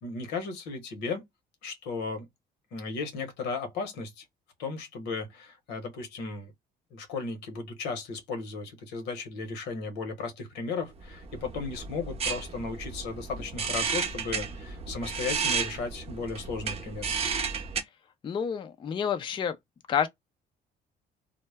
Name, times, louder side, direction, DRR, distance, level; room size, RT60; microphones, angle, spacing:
voice 1, 0.0-1.2 1.6-2.3 2.7-4.2 4.6-6.5 6.9-17.1, left 4 dB, 85° left, 0.9 m, -35 dB
sound 1, 11.0-17.8, right 5 dB, 35° right, 0.6 m, -33 dB
voice 2, 18.2-19.6 19.9-20.1, left 8 dB, 30° left, 0.4 m, -29 dB
2.1 x 2.0 x 3.3 m
cardioid pair, 110°, 17 cm